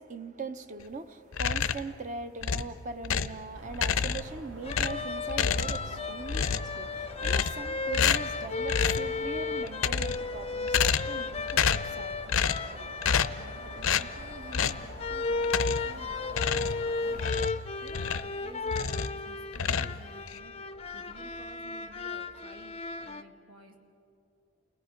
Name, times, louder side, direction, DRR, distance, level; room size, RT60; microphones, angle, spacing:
voice 1, 0.0-12.2 12.8-12.9, right 4 dB, 40° right, 0.7 m, -41 dB
sound 1, 1.3-1.9 2.4-3.4 3.7-4.4 4.7-6.0 6.3-6.8 7.2-7.7 7.9-8.4 8.7-9.1 9.7-10.3 10.7-11.2 11.5-11.9 12.3-12.7 13.0-13.4 13.8-14.1 14.5-14.9 15.4-15.9 16.3-18.4 18.7-19.2 19.5-20.4, left 7 dB, 85° left, 0.6 m, -29 dB
sound 2, 3.5-17.5, right 1 dB, 65° right, 1.4 m, -46 dB
sound 3, 4.6-23.2, left 4 dB, 30° left, 0.5 m, -35 dB
voice 2, 13.4-17.3 17.8-23.8, right 2 dB, 80° right, 2.7 m, -52 dB
29.0 x 19.0 x 5.1 m
head